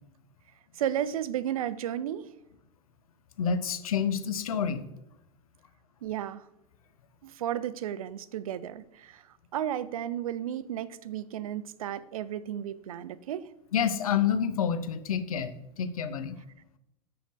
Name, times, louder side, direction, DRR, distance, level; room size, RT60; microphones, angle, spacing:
voice 1, 0.7-2.3 6.0-6.5 7.2-13.5, right 10 dB, 70° right, 16 dB, 0.5 m, -33 dB
voice 2, 3.4-4.8 13.7-16.4, left 7 dB, 70° left, 12 dB, 0.6 m, -28 dB
5.9 x 5.1 x 5.1 m, 0.87 s
figure-of-eight pair, 85°, 19 cm